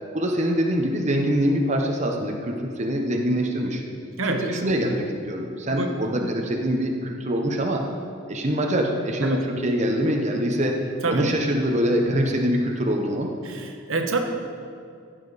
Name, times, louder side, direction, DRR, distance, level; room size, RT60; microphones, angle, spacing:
voice 1, 0.1-3.8 4.3-7.8 8.3-10.8 11.1-13.3, equal, 35° right, 1 dB, 0.9 m, -24 dB
voice 2, 4.2-4.9 5.7-6.3 9.2-9.4 11.0-11.3 13.4-14.2, right 3 dB, 85° right, 4 dB, 1.0 m, -27 dB
15.0 x 7.4 x 4.1 m, 2.4 s
head